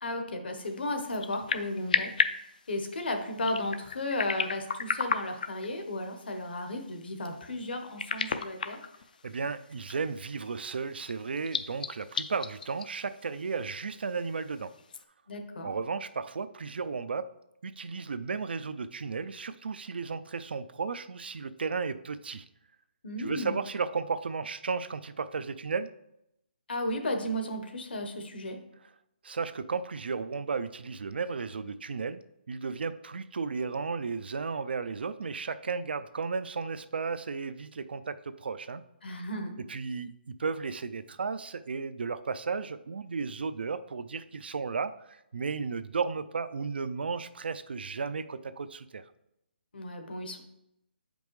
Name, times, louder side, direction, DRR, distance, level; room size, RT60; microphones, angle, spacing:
voice 1, 0.0-2.1 2.7-8.8 15.3-15.7 23.0-23.6 26.7-28.6 39.0-39.5 49.7-50.4, left 1 dB, 70° left, 5 dB, 1.1 m, -34 dB
sound 1, 0.6-15.0, left 5 dB, 50° left, 0.4 m, -36 dB
voice 2, 9.2-14.7 15.6-17.3 17.6-22.4 23.2-25.9 29.2-38.8 39.7-49.1, right 5 dB, 70° right, 13 dB, 0.4 m, -34 dB
7.3 x 5.2 x 3.1 m, 0.82 s
hypercardioid pair, 175°, 6 cm